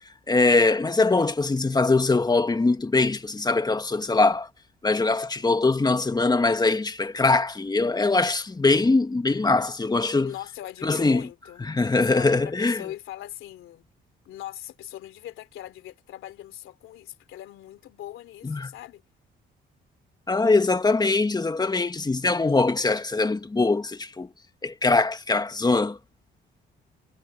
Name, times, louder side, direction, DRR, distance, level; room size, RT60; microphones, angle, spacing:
voice 1, 0.3-4.5 4.8-10.3 10.8-11.2 11.7-12.8 18.4-18.7 20.3-24.3 24.6-26.0, left 3 dB, 20° left, 1.6 m, -22 dB
voice 2, 10.2-11.6 12.1-13.9 14.2-19.0, left 13 dB, 85° left, 3.0 m, -40 dB
cardioid pair, 90°, 20 cm